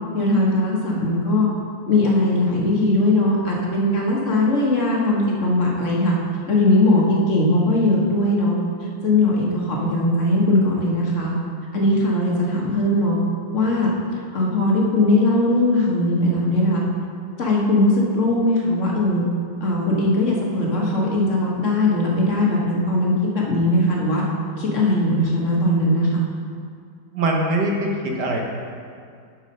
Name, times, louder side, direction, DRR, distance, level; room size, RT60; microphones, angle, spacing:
voice 1, 0.1-1.5 1.9-6.1 6.5-8.6 9.0-11.3 11.7-13.2 13.5-13.9 14.3-16.8 17.4-19.2 19.6-24.2 24.6-26.1, left 1 dB, 40° left, -3 dB, 1.5 m, -19 dB
voice 2, 27.1-28.4, right 1 dB, 60° right, 0 dB, 1.5 m, -22 dB
7.2 x 6.6 x 5.3 m, 2.3 s
omnidirectional pair, 2.2 m